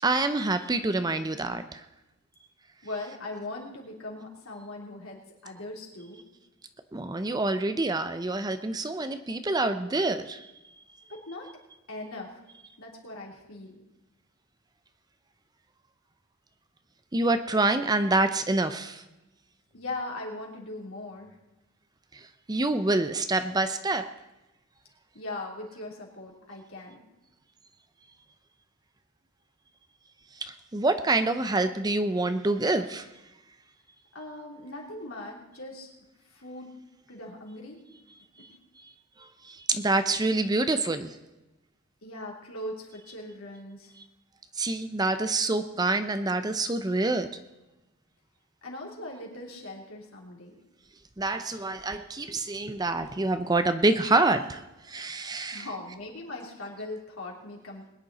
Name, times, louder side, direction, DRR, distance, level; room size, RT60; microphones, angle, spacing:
voice 1, 0.0-1.8 6.9-10.5 17.1-19.0 22.5-24.1 30.4-33.1 38.8-38.9 39.2-41.2 44.6-47.3 51.2-54.6 54.9-55.7, right 2 dB, 20° right, 10 dB, 0.6 m, -26 dB
voice 2, 2.8-6.2 11.1-11.5 11.9-12.4 12.8-13.8 19.7-21.4 25.1-27.0 34.1-35.9 36.2-36.7 37.1-37.8 38.4-38.5 42.0-43.9 48.6-50.5 55.5-57.8, left 2 dB, 70° left, -1 dB, 3.3 m, -40 dB
21.5 x 10.0 x 4.1 m, 0.98 s
head